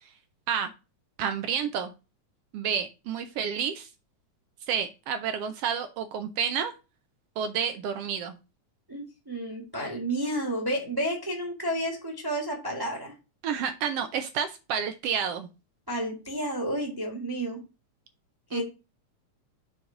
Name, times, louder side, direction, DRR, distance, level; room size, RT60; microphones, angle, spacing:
voice 1, 1.2-1.9 2.5-3.9 4.7-6.7 7.4-8.4 13.4-15.5 18.5-18.6, right 7 dB, 75° right, 9 dB, 1.4 m, -30 dB
voice 2, 8.9-13.1 15.9-17.6 18.5-18.6, right 1 dB, 10° right, 1 dB, 1.1 m, -31 dB
6.4 x 3.9 x 5.7 m, 0.29 s
omnidirectional pair, 3.3 m